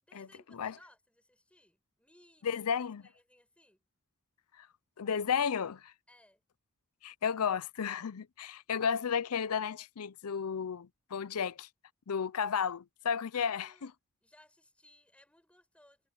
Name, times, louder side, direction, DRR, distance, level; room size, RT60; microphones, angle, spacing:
voice 1, 0.0-2.6 3.0-3.8 6.1-6.4 13.3-13.9 14.2-16.1, left 1 dB, 5° left, 6.1 m, -62 dB
voice 2, 2.4-3.0 4.6-4.7 5.0-5.9 7.0-11.7 12.1-13.9, left 7 dB, 80° left, 0.6 m, -33 dB
head